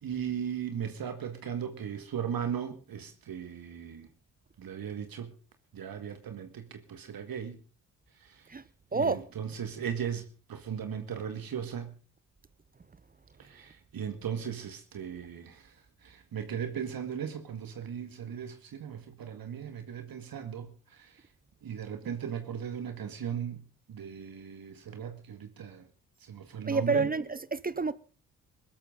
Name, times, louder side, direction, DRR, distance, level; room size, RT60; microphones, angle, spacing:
voice 1, 0.0-4.1 4.6-5.3 5.7-7.6 8.2-8.5 8.9-12.0 13.4-15.7 16.0-21.2 21.6-23.6 23.9-25.9 26.2-27.1, right 8 dB, 55° right, 2.0 m, -37 dB
voice 2, 26.6-27.9, right 4 dB, 20° right, 0.8 m, -28 dB
22.0 x 12.5 x 3.9 m
hypercardioid pair, 40°, 43 cm